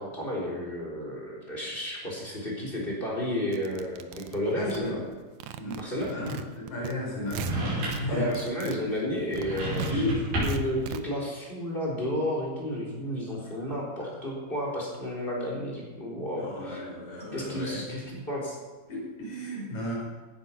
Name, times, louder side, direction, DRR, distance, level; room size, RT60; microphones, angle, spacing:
voice 1, 0.0-5.0 5.8-6.1 8.1-16.8 17.3-18.6, equal, 15° left, -3 dB, 3.7 m, -32 dB
sound 1, 3.5-5.2 5.4-6.9 7.2-8.0 8.3-11.0, right 10 dB, 85° right, 1.7 m, -41 dB
voice 2, 4.5-5.0 5.6-7.5 7.8-8.3 9.8-10.4 16.4-17.8 18.9-20.0, left 2 dB, 50° left, -2 dB, 5.6 m, -34 dB
sound 2, 7.3-8.2 9.3-10.8, right 1 dB, 65° right, 7.1 m, -30 dB
17.0 x 9.8 x 5.9 m, 1.3 s
omnidirectional pair, 4.4 m